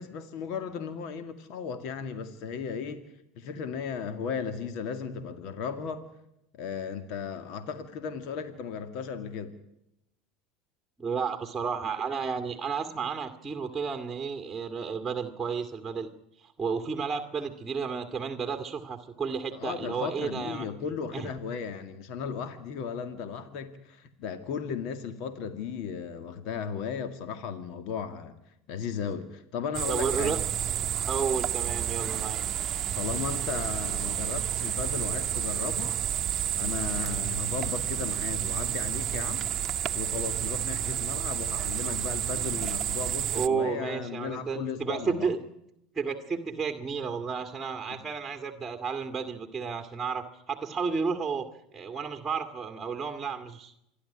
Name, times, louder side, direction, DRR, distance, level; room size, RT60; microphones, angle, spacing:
voice 1, 0.0-3.1 3.4-6.1 6.5-9.5 19.5-28.4 28.7-30.4 33.0-36.0 36.6-39.5 39.9-45.3 47.9-48.0, left 6 dB, 65° left, 9 dB, 2.1 m, -35 dB
voice 2, 11.0-16.1 16.4-20.7 21.1-21.3 29.9-30.4 31.1-32.4 43.3-45.4 45.9-51.5 51.7-53.7, right 5 dB, 15° right, 6 dB, 2.0 m, -32 dB
sound 1, 29.7-43.5, right 10 dB, 45° right, 0.9 m, -30 dB
27.0 x 11.5 x 10.0 m, 0.82 s
hypercardioid pair, 90°, 0 cm